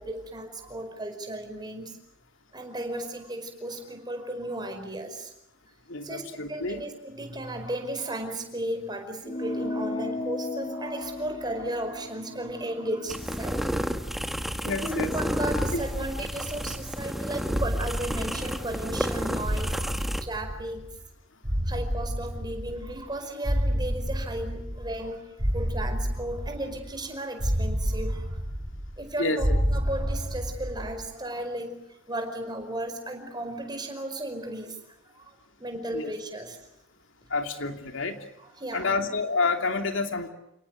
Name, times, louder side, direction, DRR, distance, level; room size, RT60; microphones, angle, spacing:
voice 1, 0.0-2.0 2.5-5.3 6.0-13.7 14.2-20.8 21.6-28.4 29.0-34.8 35.0-35.3 35.6-36.6 38.6-39.1, right 1 dB, 20° right, 5 dB, 5.1 m, -35 dB
voice 2, 5.9-6.8 14.6-15.1 15.7-15.8 29.2-29.6 35.9-36.1 37.3-38.2 38.7-40.3, left 3 dB, 70° left, 5 dB, 2.8 m, -28 dB
sound 1, 9.2-14.1, left 2 dB, 30° left, 1.1 m, -36 dB
sound 2, 13.1-20.2, equal, ahead, 1.3 m, -31 dB
sound 3, 13.9-14.8 15.5-17.0 17.5-19.1 19.4-21.0 21.4-23.1 23.4-25.1 25.4-27.0 27.4-29.1 29.4-31.0, equal, 40° right, 7.8 m, -30 dB
30.0 x 18.5 x 9.5 m, 0.83 s
head